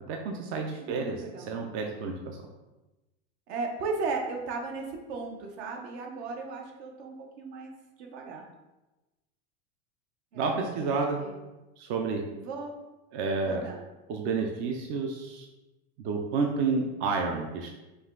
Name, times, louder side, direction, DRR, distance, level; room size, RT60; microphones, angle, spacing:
voice 1, 0.1-1.2 1.5-2.4 10.3-11.2 11.8-12.2 13.1-13.7 14.1-15.5 16.0-17.7, right 4 dB, 35° right, 3 dB, 0.4 m, -30 dB
voice 2, 0.8-1.5 3.5-7.7 8.0-8.4 10.3-11.4 12.4-12.7 13.4-13.9, right 4 dB, 65° right, 2 dB, 1.0 m, -36 dB
5.3 x 2.3 x 3.7 m, 1.0 s
supercardioid pair, 140°, 35 cm